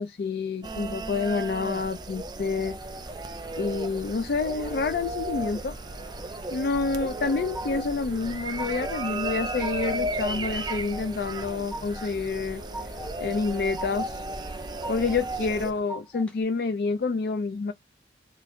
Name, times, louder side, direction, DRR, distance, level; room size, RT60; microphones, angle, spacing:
voice 1, 0.0-2.8 3.6-5.7 6.5-12.6 13.2-14.2 14.9-17.7, left 4 dB, 55° left, 0.4 m, -28 dB
sound 1, 0.6-15.7, right 2 dB, 25° right, 0.4 m, -34 dB
sound 2, 2.8-15.8, equal, 80° left, 1.9 m, -49 dB
sound 3, 6.9-7.9 8.3-9.0 9.3-10.0 10.4-11.1 11.4-12.1 12.4-13.1 13.5-14.2 14.5-15.2 15.6-16.3, equal, 5° left, 0.7 m, -40 dB
3.9 x 2.4 x 3.2 m
head